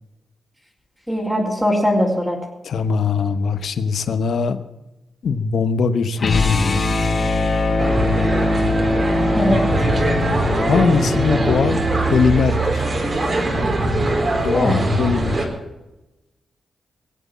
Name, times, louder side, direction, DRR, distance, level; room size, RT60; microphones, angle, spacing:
voice 1, 1.1-2.4 9.3-9.9 14.5-14.8, left 1 dB, 5° right, -6 dB, 3.5 m, -20 dB
voice 2, 2.6-4.6 5.2-6.9 10.7-11.8 12.1-12.8 14.4-15.5, left 5 dB, 70° left, 12 dB, 1.0 m, -21 dB
sound 1, 6.2-12.2, left 2 dB, 50° left, 4.3 m, -21 dB
sound 2, 7.8-15.4, right 2 dB, 45° right, 4.1 m, -21 dB
20.0 x 8.3 x 7.3 m, 1.0 s
cardioid pair, 75°, 0 cm